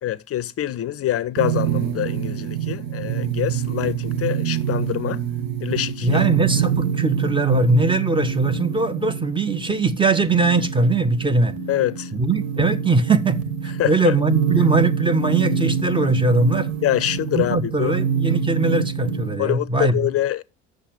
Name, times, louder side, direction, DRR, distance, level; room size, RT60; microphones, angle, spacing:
voice 1, 0.0-5.2 5.6-6.2 11.7-12.1 13.8-14.1 16.8-17.9 19.4-20.4, left 13 dB, 40° left, 0.6 m, -25 dB
sound 1, 1.4-19.4, right 7 dB, 60° right, 1.1 m, -25 dB
voice 2, 6.0-11.5 12.1-16.7 17.3-19.9, right 3 dB, 15° right, 1.0 m, -21 dB
6.5 x 6.3 x 7.5 m
hypercardioid pair, 60°, 39 cm